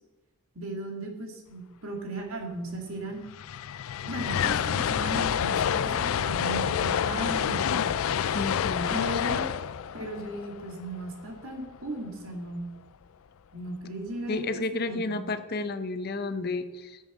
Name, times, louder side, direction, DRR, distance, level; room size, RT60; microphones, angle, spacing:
voice 1, 0.5-3.2 4.0-7.8 8.9-9.5 9.9-12.7 13.5-14.5 14.9-15.2, right 1 dB, 75° right, 1 dB, 2.4 m, -36 dB
sound 1, 2.8-2.9 3.1-11.3, left 8 dB, 70° left, 0.4 m, -28 dB
voice 2, 8.3-9.4 14.3-17.0, left 3 dB, 45° left, 10 dB, 0.7 m, -32 dB
10.5 x 7.3 x 6.3 m, 1.2 s
head